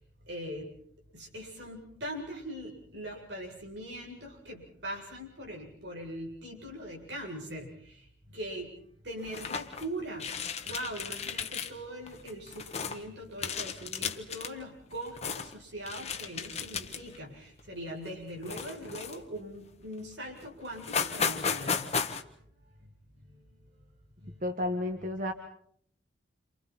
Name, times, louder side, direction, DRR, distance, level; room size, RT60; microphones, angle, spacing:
voice 1, 0.3-0.7 1.1-8.0 8.3-8.7 9.0-10.3 10.6-21.8, equal, 70° right, 0 dB, 7.7 m, -41 dB
sound 1, 9.2-9.9 10.2-11.7 12.1-13.0 13.4-14.5 14.9-15.5 15.9-17.2 17.6-17.8 18.4-19.4 20.0-20.1 20.4-20.5 20.7-22.2, left 6 dB, 35° left, 1.5 m, -34 dB
voice 2, 24.4-25.3, left 1 dB, 50° right, 4 dB, 1.8 m, -31 dB
29.0 x 28.0 x 4.4 m, 0.63 s
head